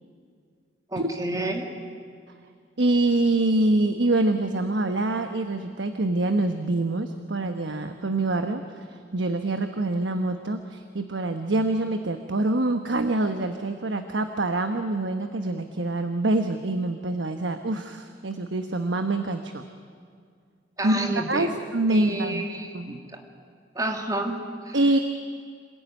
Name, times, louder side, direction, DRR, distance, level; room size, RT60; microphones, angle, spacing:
voice 1, 0.9-1.7 20.8-21.5 21.9-23.2 23.8-24.8, right 1 dB, 20° right, 4 dB, 2.2 m, -30 dB
voice 2, 2.8-19.6 20.8-22.4 22.7-22.9 24.7-25.0, right 2 dB, 90° right, 7 dB, 1.1 m, -25 dB
27.0 x 16.5 x 9.2 m, 2.1 s
head